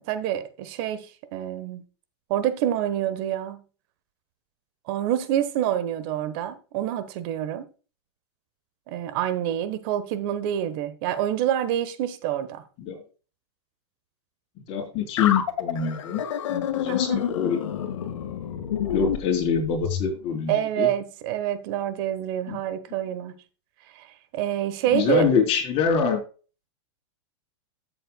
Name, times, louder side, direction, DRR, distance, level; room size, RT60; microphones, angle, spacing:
voice 1, 0.1-1.8 2.3-3.6 4.9-7.6 8.9-12.6 16.9-17.2 20.5-23.3 23.9-25.3, right 11 dB, 50° right, 1.3 m, -27 dB
voice 2, 14.7-16.2 16.5-17.6 18.9-20.9 22.5-22.6 24.9-26.2, left 6 dB, 40° left, 4.2 m, -25 dB
sound 1, 15.2-20.1, left 9 dB, 80° left, 1.9 m, -28 dB
13.5 x 7.8 x 2.3 m
supercardioid pair, 140°, 16 cm